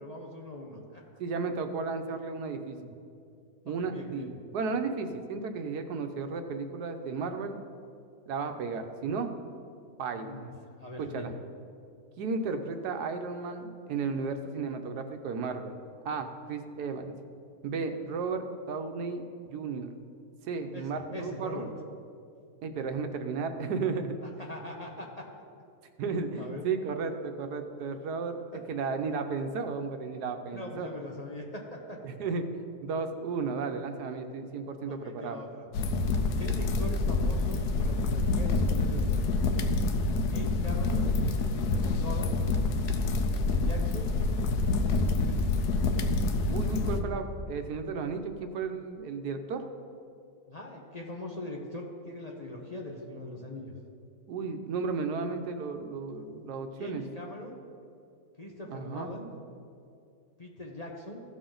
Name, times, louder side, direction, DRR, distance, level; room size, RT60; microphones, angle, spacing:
voice 1, 0.0-1.0 3.8-4.3 10.1-11.3 20.7-21.7 24.2-25.3 26.4-26.6 30.5-32.0 34.9-35.7 36.4-39.5 40.3-41.1 41.5-42.5 43.3-44.1 44.6-45.5 50.5-53.7 56.8-57.6 58.4-59.3 60.4-61.2, left 1 dB, 30° left, -1 dB, 0.8 m, -41 dB
voice 2, 1.2-2.9 3.6-7.6 8.3-9.3 10.0-10.5 11.0-11.3 12.2-15.8 16.0-17.1 17.6-19.2 19.5-19.9 20.5-21.6 22.6-24.2 26.0-30.9 32.0-35.4 46.5-49.6 54.3-57.0 58.6-59.1, right 4 dB, 90° right, 7 dB, 1.3 m, -34 dB
sound 1, 35.7-47.0, left 3 dB, 85° left, 1.2 m, -27 dB
15.5 x 6.3 x 3.9 m, 2.5 s
omnidirectional pair, 1.7 m